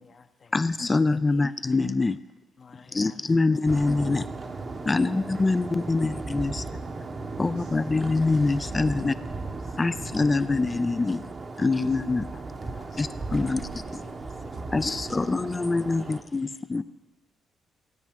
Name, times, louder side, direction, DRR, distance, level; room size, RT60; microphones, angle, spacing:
voice 1, 0.0-0.7 1.3-1.5 2.6-3.2 3.8-5.2 5.8-6.2 6.5-6.6 7.6-8.1 8.8-9.8 10.5-10.6 10.9-11.0 11.5-11.7 12.3-13.0 13.4-15.4 16.0-16.2 16.8-16.9, left 5 dB, 45° left, 0.9 m, -53 dB
voice 2, 0.5-2.2 2.7-4.3 4.9-6.6 7.4-9.2 9.8-11.3 11.6-12.3 13.0-14.0 14.7-16.8, left 3 dB, 25° left, 0.4 m, -25 dB
sound 1, 3.7-16.2, right 3 dB, 35° right, 0.9 m, -36 dB
voice 3, 6.8-7.8 11.7-12.4, right 1 dB, 90° right, 3.8 m, -57 dB
16.0 x 9.3 x 3.6 m
cardioid pair, 90°, 0 cm